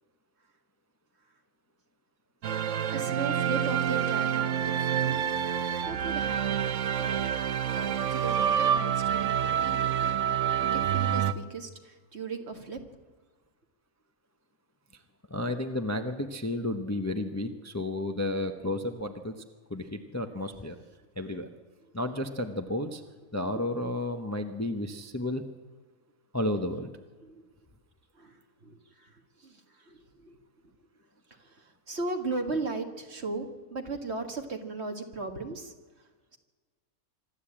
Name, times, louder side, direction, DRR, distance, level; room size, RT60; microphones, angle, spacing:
sound 1, 2.4-11.3, right 9 dB, 65° right, 1.1 m, -27 dB
voice 1, 2.6-5.2 5.9-12.8 21.2-21.4 21.8-21.9 26.8-26.9 27.2-27.5 28.1-30.4 31.3-36.4, right 3 dB, 50° right, 5 dB, 2.1 m, -38 dB
voice 2, 15.3-19.4 19.7-20.8 21.2-21.5 21.9-23.0 23.3-25.4 26.3-26.9, left 1 dB, 15° left, 6 dB, 0.9 m, -32 dB
26.0 x 12.0 x 8.8 m, 1.4 s
omnidirectional pair, 1.5 m